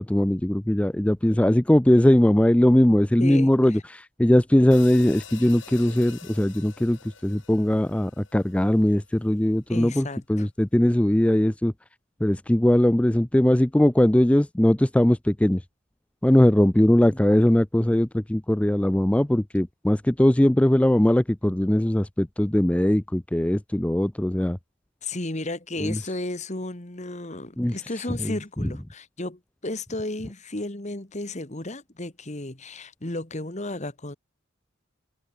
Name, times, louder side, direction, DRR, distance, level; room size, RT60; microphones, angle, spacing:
voice 1, 0.0-11.7 12.2-15.6 16.2-24.6 25.8-26.0 27.6-27.7 28.2-28.3, left 1 dB, 5° left, 0.4 m, -20 dB
voice 2, 3.2-3.8 9.7-10.5 25.0-34.2, left 2 dB, 35° left, 1.9 m, -33 dB
sound 1, 4.7-9.1, left 7 dB, 65° left, 5.5 m, -46 dB
head